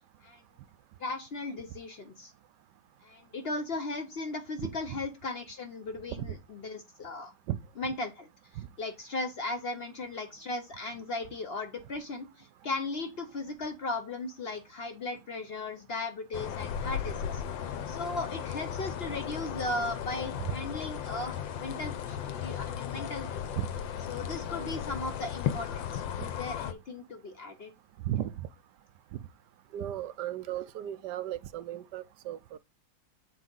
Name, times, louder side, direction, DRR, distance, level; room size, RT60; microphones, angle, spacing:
voice 1, 1.0-2.3 3.0-7.3 7.8-8.3 8.8-17.4 17.9-23.4 24.1-27.7, left 2 dB, 55° left, 0.6 m, -37 dB
voice 2, 4.6-5.0 6.2-6.3 7.5-7.6 8.6-8.7 20.4-20.5 23.6-23.7 28.1-28.5 29.1-29.2 29.7-32.6, right 12 dB, 75° right, 1.1 m, -35 dB
sound 1, 16.3-26.7, left 9 dB, 85° left, 1.5 m, -36 dB
8.3 x 4.5 x 3.8 m
omnidirectional pair, 2.0 m